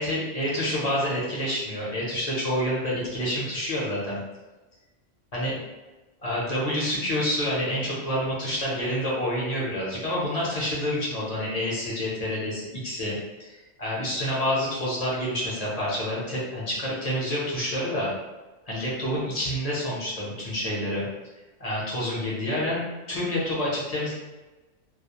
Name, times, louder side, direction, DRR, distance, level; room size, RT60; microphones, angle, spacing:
voice 1, 0.0-4.2 5.3-5.5 6.2-18.1 18.7-21.1 21.6-22.8 23.1-24.1, equal, 40° left, -7 dB, 0.7 m, -28 dB
2.3 x 2.0 x 2.8 m, 1.2 s
omnidirectional pair, 1.2 m